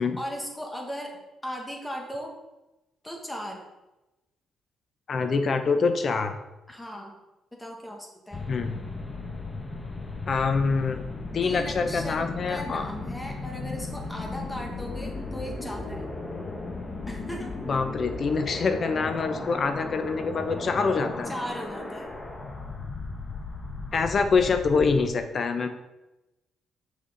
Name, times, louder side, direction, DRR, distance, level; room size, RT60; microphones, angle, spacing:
voice 1, 0.0-2.3 3.0-3.6 6.7-7.1 7.5-8.4 11.4-16.1 17.1-17.6 21.2-22.1, equal, 10° left, 1 dB, 1.6 m, -37 dB
voice 2, 5.1-6.4 8.5-8.8 10.3-11.1 11.3-12.8 17.7-21.3 23.9-25.7, left 4 dB, 50° left, 7 dB, 0.7 m, -25 dB
sound 1, 8.3-25.1, left 3 dB, 25° left, 1.1 m, -36 dB
6.5 x 5.4 x 3.9 m, 0.99 s
cardioid pair, 90°, 0 cm